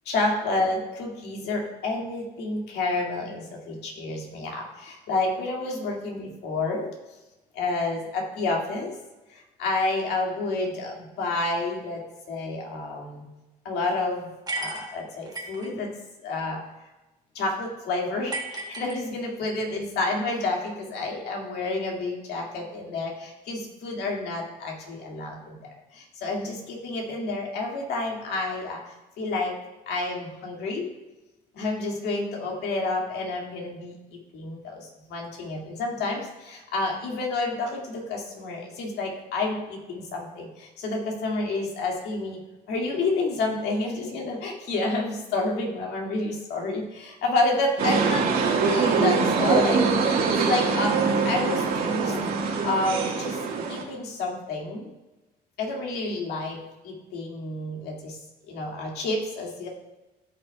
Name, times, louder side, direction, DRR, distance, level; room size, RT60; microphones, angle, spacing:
voice 1, 0.1-6.9 7.5-8.9 9.3-13.2 13.6-15.9 16.2-16.6 17.3-29.5 29.9-30.9 31.5-42.4 42.7-48.3 48.6-49.9 50.3-52.2 52.6-53.4 53.7-54.9 55.6-58.2 58.5-59.7, left 2 dB, 75° left, 0 dB, 2.1 m, -29 dB
sound 1, 14.5-15.7 18.3-19.5, right 2 dB, 25° right, 1.3 m, -34 dB
sound 2, 47.8-53.8, right 5 dB, 65° right, 1.7 m, -23 dB
13.5 x 5.8 x 2.3 m, 1.0 s
cardioid pair, 110°, 17 cm